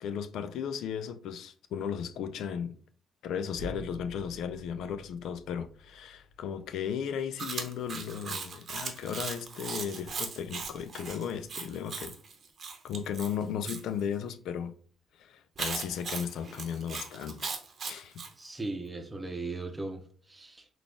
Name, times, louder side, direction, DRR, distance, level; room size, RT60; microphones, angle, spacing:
voice 1, 0.0-2.8 3.2-12.2 12.8-14.7 15.2-17.6 17.8-18.2, left 8 dB, 80° left, 0.3 m, -35 dB
sound 1, 3.6-7.4, right 1 dB, 15° left, 1.2 m, -48 dB
Chewing mastication, 7.4-13.8 15.6-18.3, right 5 dB, 50° right, 0.8 m, -38 dB
voice 2, 18.4-20.7, right 2 dB, 20° right, 0.7 m, -38 dB
3.9 x 2.4 x 3.2 m
cardioid pair, 90°, 0 cm